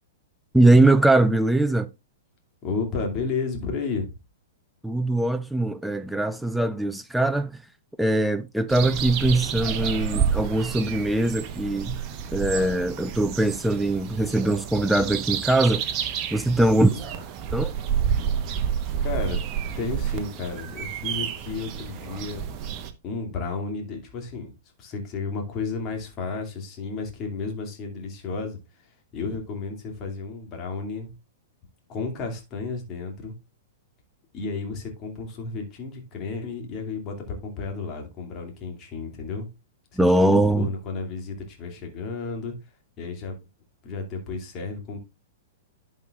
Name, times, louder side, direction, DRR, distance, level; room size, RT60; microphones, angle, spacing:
voice 1, 0.5-1.9 4.8-7.6 8.0-12.0 12.3-15.9 16.3-16.9 17.5-17.7 40.0-40.7, right 2 dB, ahead, 0.4 m, -21 dB
voice 2, 2.6-4.1 16.5-17.0 18.6-18.7 19.0-19.4 19.8-22.4 23.0-24.5 24.8-31.1 31.9-33.3 34.3-39.5 39.9-42.5 43.0-43.3 43.8-45.0, left 4 dB, 30° left, 2.5 m, -32 dB
sound 1, 8.7-22.9, right 8 dB, 35° right, 1.1 m, -29 dB
11.0 x 5.5 x 2.4 m
figure-of-eight pair, 105°, 0 cm